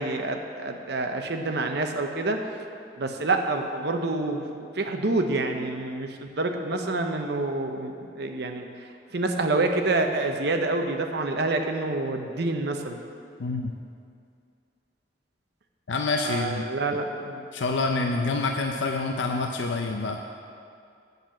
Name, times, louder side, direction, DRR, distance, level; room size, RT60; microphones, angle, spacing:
voice 1, 0.0-2.4 3.0-8.7 9.1-13.0 16.2-17.4, right 2 dB, 65° right, 4 dB, 0.8 m, -27 dB
voice 2, 13.4-13.7 15.9-16.6 17.5-20.2, left 3 dB, 90° left, 3 dB, 0.6 m, -27 dB
8.0 x 6.7 x 7.5 m, 2.4 s
head